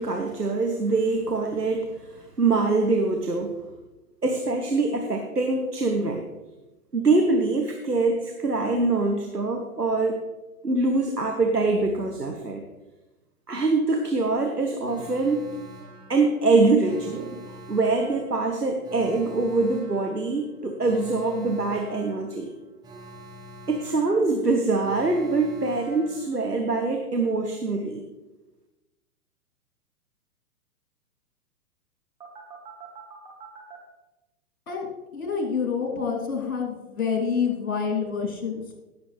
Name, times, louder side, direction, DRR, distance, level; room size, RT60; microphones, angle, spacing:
voice 1, 0.0-3.5 4.2-6.3 6.9-10.2 10.6-12.6 13.5-15.4 16.1-17.4 17.7-22.5 23.7-28.0, right 3 dB, 90° right, 3 dB, 1.3 m, -24 dB
Alarm, 14.8-26.7 32.2-33.8, right 1 dB, 10° right, 1.4 m, -46 dB
voice 2, 35.1-38.7, left 6 dB, 60° left, 0 dB, 3.1 m, -27 dB
18.0 x 7.3 x 3.3 m, 1.1 s
figure-of-eight pair, 115°, 46 cm